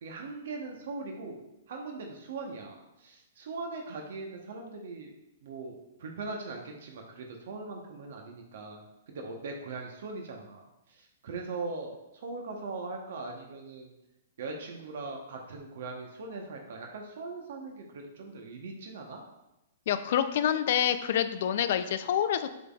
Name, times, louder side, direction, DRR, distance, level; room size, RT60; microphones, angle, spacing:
voice 1, 0.0-1.4 1.7-5.1 5.4-13.9 14.4-19.2, right 3 dB, 65° right, 1 dB, 1.0 m, -40 dB
voice 2, 19.9-22.5, left 9 dB, 60° left, 11 dB, 0.5 m, -27 dB
11.0 x 3.8 x 2.4 m, 0.95 s
hypercardioid pair, 125°, 0 cm